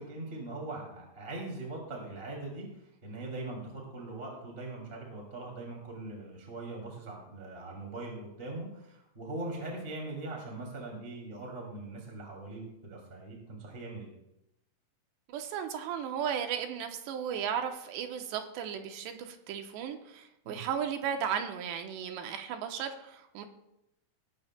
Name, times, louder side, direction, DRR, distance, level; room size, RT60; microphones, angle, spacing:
voice 1, 0.0-14.1 20.4-20.6, right 2 dB, 20° right, -1 dB, 1.6 m, -41 dB
voice 2, 15.3-23.5, right 8 dB, 75° right, 5 dB, 2.8 m, -35 dB
18.5 x 12.5 x 2.2 m, 0.83 s
omnidirectional pair, 5.5 m